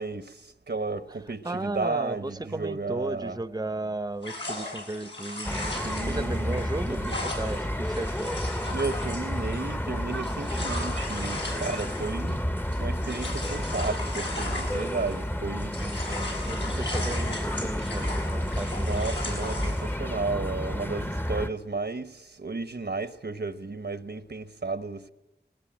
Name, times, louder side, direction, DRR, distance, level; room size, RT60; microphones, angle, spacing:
voice 1, 0.0-3.4 5.8-7.2 8.7-12.4 12.8-15.8 16.6-16.8 18.8-25.1, right 3 dB, 75° right, 1.0 m, -33 dB
voice 2, 1.4-5.7 6.0-8.4 15.7-19.0, right 2 dB, 20° right, 0.7 m, -35 dB
sound 1, 4.2-15.3 15.6-19.9, left 2 dB, 85° left, 6.2 m, -37 dB
sound 2, 5.4-21.5, equal, 10° left, 0.8 m, -31 dB
20.0 x 19.5 x 9.0 m
wide cardioid pair, 55°, 18 cm